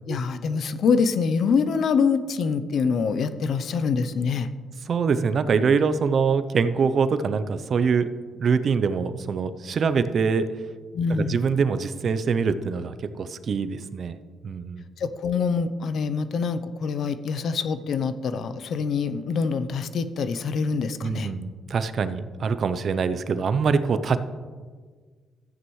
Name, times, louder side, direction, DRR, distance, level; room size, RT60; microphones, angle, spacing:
voice 1, 0.1-4.5 10.9-11.4 15.0-21.3, left 5 dB, 65° left, 11 dB, 0.6 m, -25 dB
voice 2, 4.9-8.1 8.4-10.5 11.1-14.8 21.0-24.2, right 5 dB, 55° right, 12 dB, 0.6 m, -24 dB
13.5 x 9.5 x 3.1 m, 1.6 s
cardioid pair, 90°, 0 cm